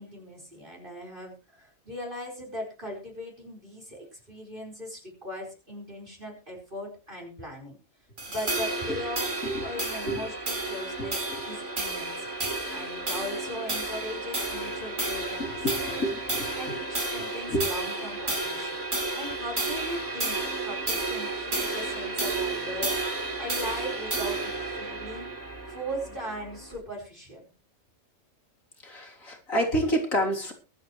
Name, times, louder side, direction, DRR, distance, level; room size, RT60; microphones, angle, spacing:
voice 1, 0.0-7.8 8.3-9.3 9.6-12.3 12.7-15.5 15.8-16.2 16.6-18.8 19.1-25.4 25.7-27.4, equal, 40° right, -1 dB, 5.0 m, -39 dB
sound 1, 8.2-26.8, right 2 dB, 65° right, 4.3 m, -32 dB
voice 2, 11.0-11.4 15.4-16.8 17.2-17.7 28.8-30.5, right 1 dB, 85° left, 0 dB, 3.9 m, -29 dB
22.5 x 9.4 x 3.2 m, 0.33 s
omnidirectional pair, 1.4 m